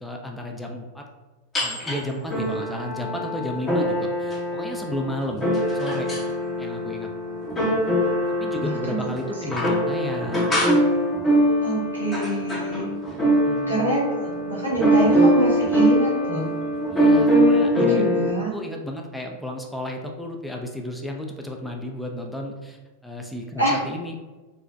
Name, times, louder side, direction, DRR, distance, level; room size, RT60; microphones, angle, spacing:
voice 1, 0.0-1.1 1.6-5.5 5.7-6.1 6.6-7.1 8.4-10.6 13.4-14.0 16.9-18.1 18.5-24.2, left 1 dB, 5° left, 2 dB, 0.4 m, -33 dB
sound 1, 1.5-2.0 2.3-18.3, equal, 20° left, 0.8 m, -22 dB
voice 2, 8.6-9.0 11.6-12.9 13.7-16.5 17.7-18.5 23.6-23.8, right 2 dB, 90° left, -7 dB, 1.2 m, -26 dB
4.3 x 2.1 x 2.5 m, 1.2 s
figure-of-eight pair, 90°, 0 cm